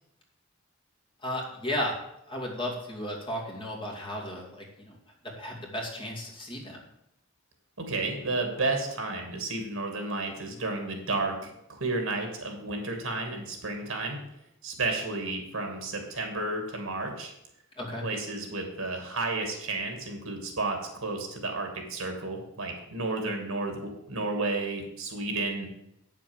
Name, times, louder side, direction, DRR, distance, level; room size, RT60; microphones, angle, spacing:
voice 1, 1.2-2.0 2.3-5.0 5.4-6.8 17.8-18.1, left 1 dB, 25° left, -2 dB, 2.6 m, -34 dB
voice 2, 7.8-14.2 14.6-17.3 18.0-25.7, right 2 dB, 75° right, 3 dB, 2.5 m, -32 dB
8.9 x 7.2 x 7.3 m, 0.80 s
head